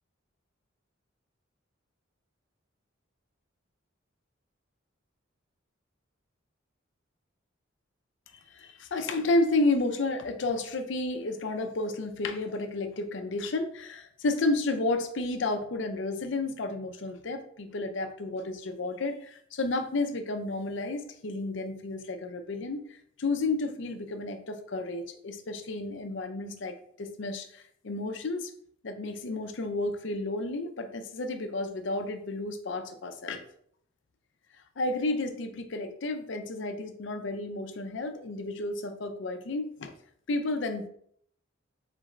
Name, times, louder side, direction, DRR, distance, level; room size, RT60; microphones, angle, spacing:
voice 1, 8.5-28.5 28.8-33.4 34.8-40.0 40.3-40.9, left 2 dB, 60° left, 7 dB, 0.5 m, -31 dB
4.0 x 3.6 x 3.2 m, 0.63 s
head